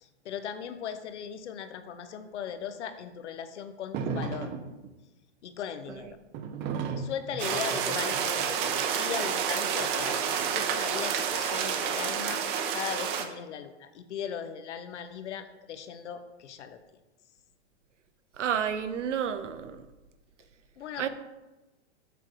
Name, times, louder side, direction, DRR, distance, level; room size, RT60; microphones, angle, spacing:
voice 1, 0.0-4.5 5.4-6.2 7.0-12.4 12.7-16.8 20.8-21.1, left 8 dB, 75° left, 9 dB, 1.0 m, -38 dB
sound 1, 3.9-4.9 6.3-8.8 9.8-10.8, right 5 dB, 30° right, 0.7 m, -35 dB
sound 2, 7.4-13.2, right 7 dB, 45° right, 1.1 m, -29 dB
voice 2, 18.4-19.8 21.0-21.1, right 8 dB, 90° right, 10 dB, 0.9 m, -30 dB
7.2 x 6.1 x 4.7 m, 1.1 s
hypercardioid pair, 135°, 35 cm